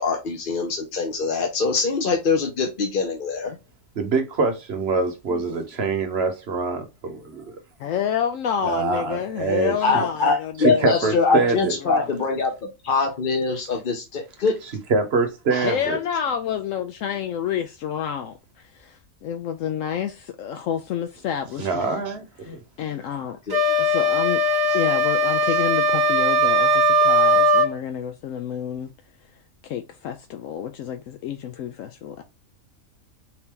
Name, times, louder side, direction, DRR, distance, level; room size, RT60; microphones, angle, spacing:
voice 1, 0.0-3.6 9.8-12.5 12.8-14.6 15.5-15.7 23.5-23.6 24.7-24.8, left 4 dB, 45° left, 0.8 m, -23 dB
voice 2, 3.9-7.5 8.6-10.0 10.6-11.7 14.9-16.0 21.6-22.6, right 4 dB, 55° right, 1.1 m, -24 dB
voice 3, 7.8-12.1 15.6-18.3 18.6-22.0 22.4-23.4 23.8-24.4 24.7-28.9 29.6-32.2, left 9 dB, 75° left, 0.9 m, -29 dB
sound 1, 23.5-27.7, equal, 25° right, 0.6 m, -19 dB
4.3 x 2.8 x 3.6 m
omnidirectional pair, 1.4 m